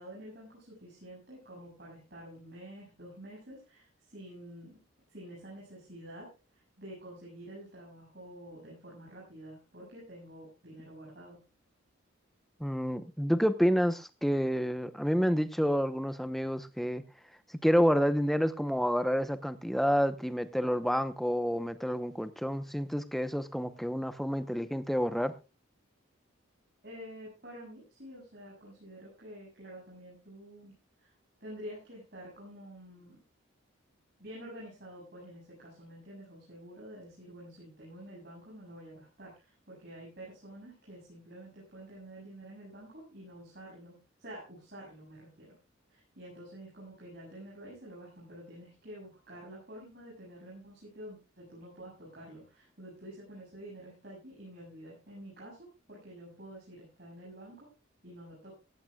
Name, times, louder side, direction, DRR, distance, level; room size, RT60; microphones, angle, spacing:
voice 1, 0.0-4.8 5.1-11.4 26.8-30.7 31.0-31.1 31.4-33.2 34.2-45.6 45.9-57.7 58.0-58.5, right 1 dB, 50° right, -4 dB, 7.2 m, -49 dB
voice 2, 12.6-17.0 17.5-25.3, equal, ahead, 11 dB, 0.8 m, -29 dB
17.0 x 15.5 x 2.3 m, 0.28 s
head